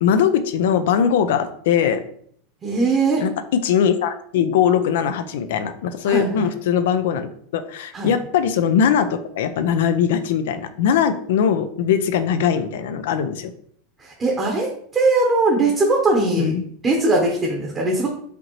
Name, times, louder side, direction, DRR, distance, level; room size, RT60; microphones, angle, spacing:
voice 1, 0.0-2.0 3.2-3.3 3.6-13.5 16.3-16.6, left 8 dB, 75° left, 10 dB, 0.4 m, -20 dB
voice 2, 2.6-3.2 6.1-6.5 7.9-8.1 14.0-16.5 16.8-18.1, right 2 dB, 25° right, 0 dB, 0.9 m, -20 dB
5.0 x 2.9 x 3.1 m, 0.64 s
supercardioid pair, 115°, 0 cm